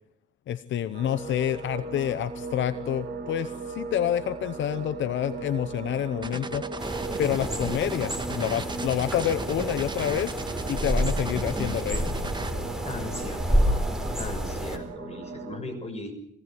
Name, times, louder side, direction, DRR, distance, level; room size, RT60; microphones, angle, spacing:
voice 1, 0.5-6.6 7.2-10.4 10.7-12.1, left 11 dB, 70° left, 14 dB, 0.9 m, -28 dB
sound 1, 0.9-15.6, right 4 dB, 60° right, 4.0 m, -38 dB
sound 2, 6.2-12.5, right 3 dB, 20° right, 1.9 m, -36 dB
sound 3, 6.8-14.8, equal, 5° right, 4.0 m, -29 dB
voice 2, 12.8-13.8 14.2-16.1, left 2 dB, 30° left, 6 dB, 6.4 m, -38 dB
22.5 x 17.0 x 7.7 m, 0.78 s
cardioid pair, 90°, 20 cm